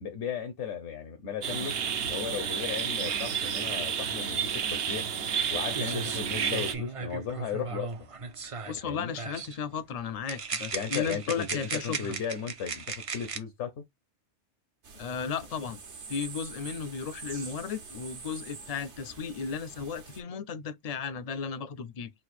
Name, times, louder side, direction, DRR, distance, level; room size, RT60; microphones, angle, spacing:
voice 1, 0.0-1.7 2.0-5.1 5.5-8.1 8.8-9.1 10.7-13.7, left 7 dB, 75° left, 1.1 m, -36 dB
sound 1, 1.4-6.7, right 7 dB, 65° right, 0.8 m, -31 dB
sound 2, 5.4-5.5 5.7-8.8 9.2-9.6 10.3-13.4, right 4 dB, 45° right, 0.4 m, -36 dB
voice 2, 8.7-12.2 14.9-15.8 16.1-22.1, left 6 dB, 55° left, 0.4 m, -35 dB
sound 3, 14.8-20.2, right 5 dB, 80° right, 1.3 m, -45 dB
4.1 x 2.5 x 4.1 m
omnidirectional pair, 1.2 m